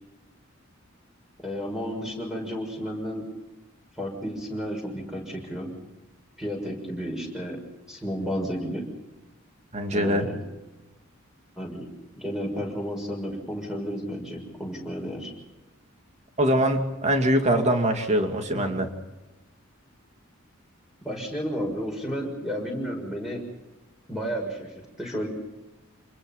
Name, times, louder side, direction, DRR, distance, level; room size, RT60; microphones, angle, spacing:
voice 1, 1.4-3.2 4.0-5.7 6.4-7.6 7.9-8.9 9.9-10.4 11.6-11.9 12.2-15.3 18.5-18.6 21.0-23.4 24.1-25.3, equal, ahead, 1 dB, 6.4 m, -32 dB
voice 2, 9.7-10.2 16.4-18.9, right 1 dB, 35° right, 5 dB, 2.6 m, -23 dB
27.5 x 21.5 x 5.6 m, 1.1 s
head